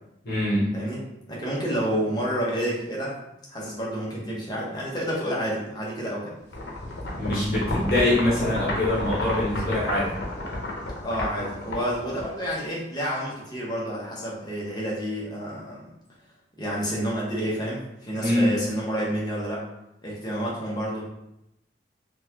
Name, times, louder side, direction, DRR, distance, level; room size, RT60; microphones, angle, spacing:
voice 1, 0.2-0.8 7.2-10.1 18.2-18.6, left 1 dB, 55° left, -8 dB, 1.1 m, -23 dB
voice 2, 1.3-3.1 3.5-6.3 11.0-15.8 16.6-19.6 20.0-21.0, equal, 25° left, -5 dB, 0.9 m, -29 dB
sound 1, 6.5-12.6, left 1 dB, 80° left, 0.7 m, -32 dB
3.9 x 2.4 x 2.8 m, 0.84 s
head